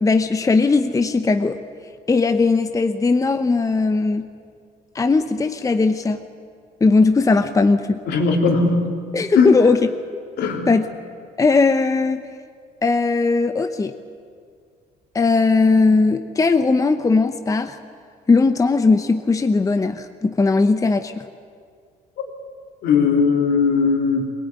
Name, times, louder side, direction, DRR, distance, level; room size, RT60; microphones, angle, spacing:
voice 1, 0.0-1.6 2.1-4.3 4.9-6.2 6.8-8.0 9.1-9.9 10.7-10.9 11.4-12.2 12.8-13.9 15.1-17.8 18.3-21.2, left 3 dB, 20° left, 8 dB, 0.9 m, -18 dB
voice 2, 8.1-8.9 9.3-9.6 10.4-10.7 22.8-24.3, left 4 dB, 75° left, 2 dB, 3.5 m, -18 dB
21.0 x 19.5 x 9.6 m, 2.1 s
cardioid pair, 110°, 17 cm